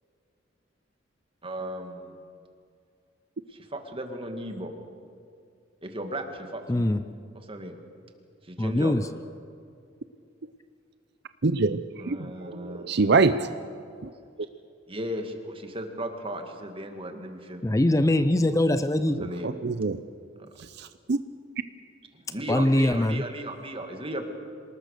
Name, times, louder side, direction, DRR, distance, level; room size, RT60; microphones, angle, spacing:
voice 1, 1.4-2.2 3.5-4.7 5.8-6.9 7.3-7.8 8.4-8.9 12.0-13.1 14.9-17.6 19.2-19.6 20.4-20.5 22.1-24.3, right 1 dB, 30° right, 5 dB, 2.2 m, -36 dB
voice 2, 6.7-7.0 8.6-9.1 17.6-19.2 22.5-23.2, left 1 dB, 15° left, 12 dB, 0.5 m, -22 dB
voice 3, 11.4-13.5 14.0-14.1 19.2-20.0 20.8-21.2, right 4 dB, 60° right, 12 dB, 0.6 m, -25 dB
26.0 x 19.5 x 6.7 m, 2.4 s
head